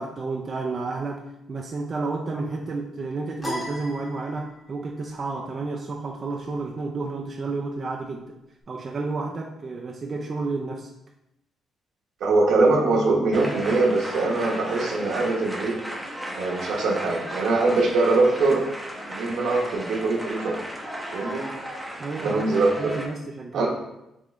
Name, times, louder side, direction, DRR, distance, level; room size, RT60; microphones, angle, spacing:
voice 1, 0.0-8.4 8.7-10.9 22.0-22.5 22.8-23.7, right 3 dB, 40° right, 0 dB, 0.4 m, -31 dB
sound 1, 3.4-4.8, left 1 dB, 15° left, 1.3 m, -35 dB
voice 2, 12.2-15.9 16.3-18.6 19.1-20.6 21.1-21.4 22.2-23.0 23.5-23.7, right 3 dB, 75° right, -1 dB, 1.0 m, -22 dB
sound 2, 13.3-23.1, equal, 5° right, 0.7 m, -35 dB
3.7 x 3.6 x 3.1 m, 0.88 s
cardioid pair, 90°, 0 cm